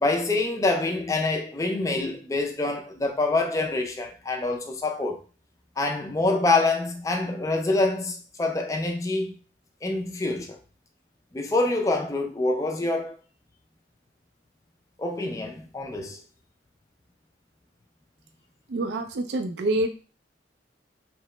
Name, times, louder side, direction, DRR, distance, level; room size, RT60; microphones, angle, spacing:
voice 1, 0.0-5.2 5.8-9.4 9.8-10.6 11.3-13.2 15.0-16.2, left 2 dB, 15° left, 0.3 m, -26 dB
voice 2, 18.7-20.0, right 2 dB, 65° right, 0.4 m, -27 dB
2.8 x 2.1 x 3.1 m
head